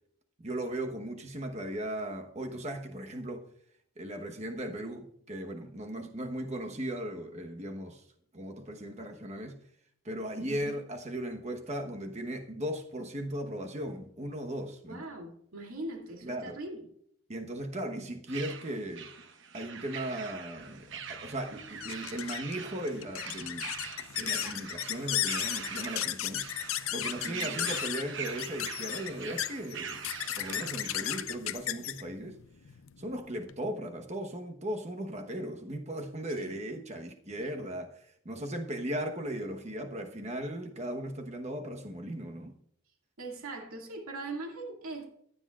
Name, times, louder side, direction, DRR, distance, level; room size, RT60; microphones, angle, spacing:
voice 1, 0.4-3.5 4.0-8.0 8.3-9.6 10.0-15.0 16.2-16.6 17.3-19.1 19.5-23.7 24.2-26.4 26.9-32.4 33.0-42.5, right 1 dB, 30° right, 1.1 m, -37 dB
voice 2, 14.9-16.8 27.2-27.6 30.5-30.8 36.4-36.6 43.2-45.1, right 2 dB, 80° right, 2.3 m, -41 dB
sound 1, 18.3-31.2, right 6 dB, 55° right, 1.0 m, -43 dB
sound 2, 20.7-33.6, left 12 dB, 70° left, 0.5 m, -36 dB
15.5 x 9.7 x 2.4 m
head